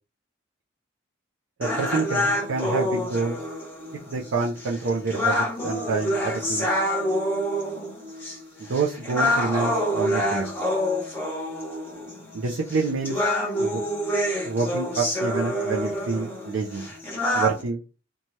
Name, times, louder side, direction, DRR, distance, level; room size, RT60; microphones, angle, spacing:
sound 1, 1.6-17.6, equal, 10° left, 0.8 m, -27 dB
voice 1, 1.6-3.4 4.1-6.7 8.7-10.5 12.3-13.2 13.6-13.8 14.4-16.9 17.3-17.8, right 4 dB, 80° right, -1 dB, 0.5 m, -27 dB
2.7 x 2.3 x 3.1 m, 0.34 s
head